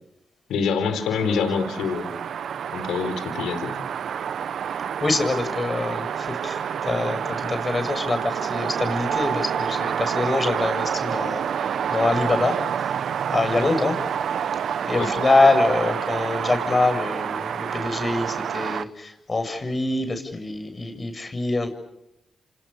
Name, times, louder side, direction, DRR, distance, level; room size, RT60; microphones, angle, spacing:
voice 1, 0.5-2.1 2.7-3.7 14.9-15.1, left 5 dB, 80° left, 9 dB, 4.3 m, -25 dB
sound 1, 0.9-18.8, right 8 dB, 70° right, 0.9 m, -28 dB
voice 2, 5.0-12.9 13.3-14.0 14.8-21.7, left 2 dB, 35° left, 7 dB, 7.6 m, -24 dB
30.0 x 27.0 x 6.8 m, 0.84 s
supercardioid pair, 45°, 0 cm